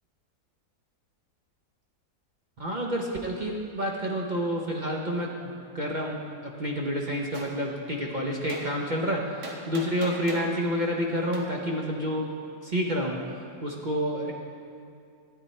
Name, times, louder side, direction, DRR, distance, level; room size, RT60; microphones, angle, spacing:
voice 1, 2.6-6.2 6.4-12.3 12.6-13.2 13.6-14.3, equal, 40° right, -1 dB, 0.8 m, -29 dB
Gunshot gunfire, 7.3-7.5 8.5-8.7 9.4-10.5 11.3-11.5, right 3 dB, 80° right, 1.8 m, -39 dB
13.0 x 9.3 x 4.2 m, 2.3 s
omnidirectional pair, 1.7 m